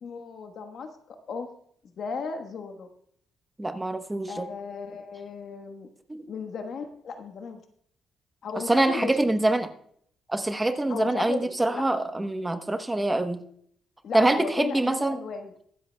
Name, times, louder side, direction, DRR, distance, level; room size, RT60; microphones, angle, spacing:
voice 1, 0.0-0.9 1.3-1.5 2.0-2.9 4.3-5.9 6.3-7.6 8.4-9.2 10.9-11.8 14.0-15.5, left 5 dB, 60° left, 6 dB, 1.2 m, -35 dB
voice 2, 3.6-4.5 6.1-6.3 8.7-9.7 10.3-13.4 14.1-15.2, right 2 dB, 15° right, 8 dB, 0.9 m, -25 dB
23.0 x 7.8 x 2.2 m, 0.66 s
cardioid pair, 90°, 0 cm